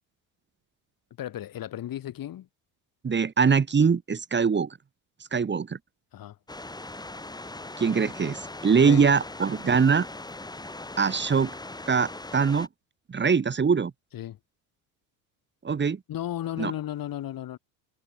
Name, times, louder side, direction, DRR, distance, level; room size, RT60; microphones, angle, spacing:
voice 1, 1.2-2.5 6.1-6.4 8.7-9.1 14.1-14.4 16.1-17.6, left 12 dB, 50° left, 2.2 m, -34 dB
voice 2, 3.0-4.8 5.3-5.8 7.8-10.1 11.0-11.5 11.9-12.7 13.1-13.9 15.6-16.0 16.6-16.7, right 5 dB, 25° right, 1.6 m, -23 dB
sound 1, 6.5-12.7, left 2 dB, 10° left, 2.2 m, -40 dB
supercardioid pair, 90°, 42 cm